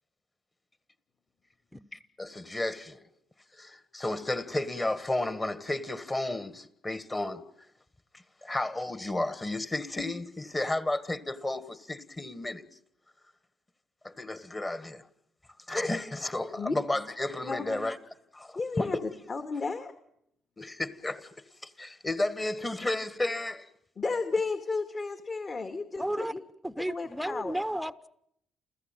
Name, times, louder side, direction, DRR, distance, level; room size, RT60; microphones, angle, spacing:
voice 1, 1.9-3.0 3.5-7.4 8.4-12.6 14.0-15.1 15.7-18.0 18.3-18.9 20.6-21.3 21.6-23.7, left 2 dB, 20° left, 1.6 m, -32 dB
voice 2, 17.5-17.8 18.6-19.0 19.3-19.9 24.0-26.4 26.8-27.6, left 4 dB, 40° left, 2.0 m, -33 dB
voice 3, 26.0-26.3 26.6-28.1, right 1 dB, ahead, 0.9 m, -33 dB
29.5 x 15.0 x 9.1 m
cardioid pair, 90°, 0 cm